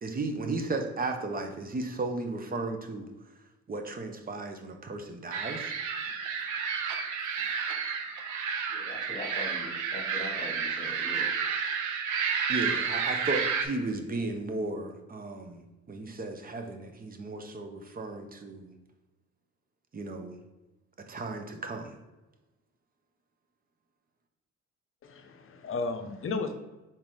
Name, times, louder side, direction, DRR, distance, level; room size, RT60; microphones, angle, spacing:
voice 1, 0.0-3.1 3.7-5.7 12.5-18.7 19.9-20.4 21.1-22.0, right 2 dB, 30° right, 5 dB, 0.7 m, -35 dB
sound 1, 5.3-13.7, right 6 dB, 75° right, 0.6 m, -31 dB
voice 2, 8.7-11.3, left 1 dB, 25° left, 1 dB, 1.3 m, -42 dB
voice 3, 25.0-26.5, left 3 dB, 45° left, 7 dB, 0.7 m, -34 dB
4.3 x 3.7 x 3.1 m, 1.1 s
cardioid pair, 90°, 30 cm